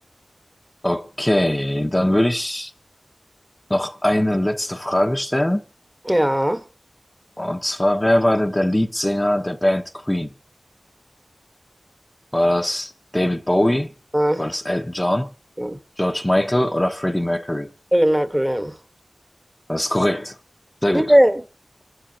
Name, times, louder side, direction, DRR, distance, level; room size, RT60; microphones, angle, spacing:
voice 1, 0.8-2.7 3.7-5.6 7.4-10.3 12.3-13.9 14.4-15.3 16.0-17.7 19.7-20.4 20.8-21.2, left 1 dB, 15° left, 1.0 m, -21 dB
voice 2, 6.1-6.6 14.1-14.4 15.6-15.8 17.9-18.7 20.9-21.4, equal, 10° right, 1.3 m, -18 dB
27.5 x 13.0 x 2.9 m
wide cardioid pair, 75°, 0 cm